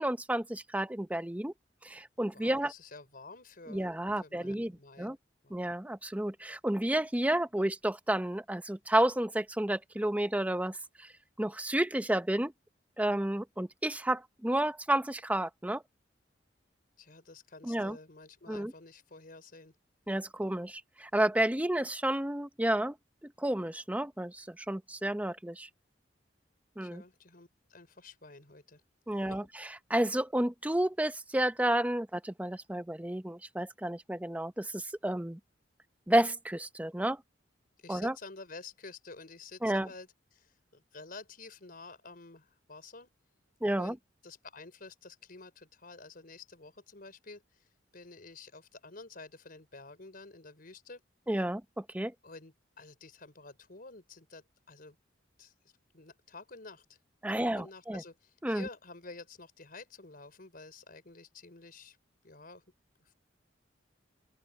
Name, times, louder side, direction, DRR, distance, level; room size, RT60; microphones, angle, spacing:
voice 1, 0.0-1.5 1.8-2.7 3.7-4.7 5.0-5.2 5.5-11.1 11.4-12.5 13.0-15.8 17.6-18.0 18.5-18.7 20.1-22.9 23.2-25.7 26.8-27.0 29.1-29.4 29.9-35.4 36.1-37.2 37.9-38.1 39.6-39.9 43.6-44.0 51.3-52.1 57.2-58.0 58.4-58.7, right 1 dB, 10° right, 0.8 m, -31 dB
voice 2, 2.3-3.9 4.2-5.1 5.4-5.6 17.0-19.7 26.8-28.8 29.1-29.4 37.8-43.1 43.8-44.0 44.2-47.7 47.9-51.0 52.2-55.0 55.4-55.5 55.9-57.0 57.3-62.0 62.2-62.6, left 3 dB, 50° left, 4.9 m, -50 dB
open air
head